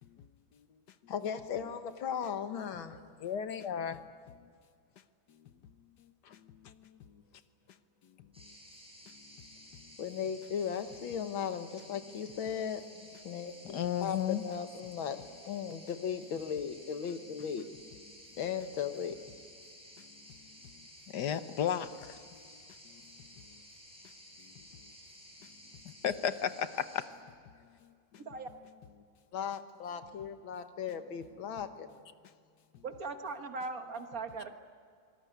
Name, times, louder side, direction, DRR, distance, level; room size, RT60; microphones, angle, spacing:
voice 1, 1.1-3.0 10.0-17.7 18.4-19.2 29.3-32.0, left 7 dB, 90° left, 9 dB, 2.1 m, -37 dB
voice 2, 3.2-4.0 6.2-6.7 13.6-14.4 21.1-22.2 22.9-23.0 25.8-27.1 27.8-27.9, left 9 dB, 65° left, 11 dB, 1.4 m, -34 dB
sound 1, 8.3-27.0, equal, 5° right, 7.5 m, -54 dB
voice 3, 32.8-34.6, right 4 dB, 50° right, 7 dB, 1.5 m, -39 dB
25.0 x 19.0 x 9.5 m, 2.2 s
omnidirectional pair, 2.1 m